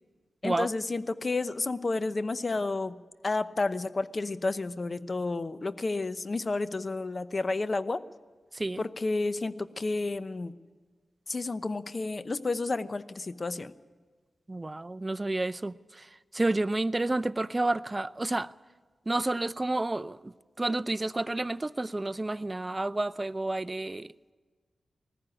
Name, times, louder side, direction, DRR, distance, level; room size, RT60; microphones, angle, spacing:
voice 1, 0.4-3.0 3.2-8.0 8.8-10.5 11.3-13.7, left 3 dB, 40° left, 13 dB, 0.9 m, -31 dB
voice 2, 8.5-8.8 14.5-18.5 19.1-24.1, right 2 dB, 25° right, 17 dB, 0.5 m, -30 dB
20.0 x 14.5 x 10.0 m, 1.4 s
cardioid pair, 60°, 0 cm